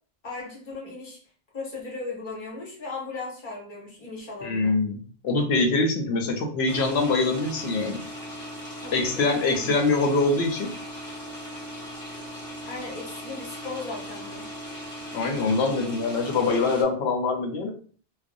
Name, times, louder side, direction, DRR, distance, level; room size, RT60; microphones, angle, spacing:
voice 1, 0.2-1.2 1.5-4.8 8.8-9.8 12.6-14.5, left 3 dB, 55° left, -2 dB, 1.0 m, -37 dB
voice 2, 4.4-8.0 8.9-10.7 15.1-17.7, left 3 dB, 85° left, 3 dB, 0.8 m, -24 dB
sound 1, 6.7-16.8, equal, 5° left, 0.8 m, -38 dB
2.5 x 2.0 x 2.5 m, 0.42 s
omnidirectional pair, 1.1 m